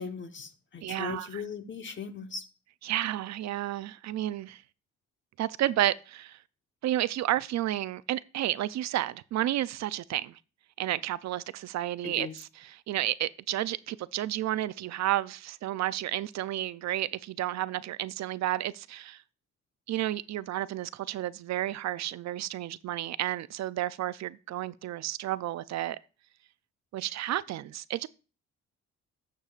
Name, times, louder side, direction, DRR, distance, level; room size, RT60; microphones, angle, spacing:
voice 1, 0.0-2.4 12.0-12.3, left 5 dB, 40° left, 1.1 m, -38 dB
voice 2, 0.8-1.4 2.8-4.6 5.4-6.4 6.8-10.4 10.8-19.2 19.9-26.0 26.9-28.1, right 13 dB, 65° right, 0.5 m, -31 dB
12.0 x 6.8 x 2.4 m
cardioid pair, 90°, 30 cm